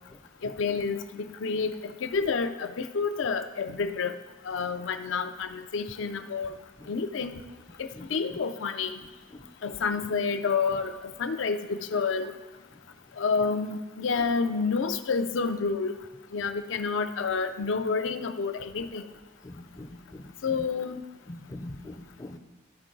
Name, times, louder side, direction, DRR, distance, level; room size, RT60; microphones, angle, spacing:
voice 1, 0.4-4.1 4.5-6.5 6.9-7.4 7.8-9.0 9.6-10.9 11.2-12.4 13.2-16.0 16.3-19.0 20.4-21.0, left 5 dB, 75° left, 9 dB, 0.5 m, -29 dB
voice 2, 7.9-8.4 9.3-9.5 19.4-20.3 21.3-22.4, left 1 dB, 15° left, 6 dB, 0.4 m, -43 dB
13.0 x 4.5 x 3.8 m, 1.2 s
head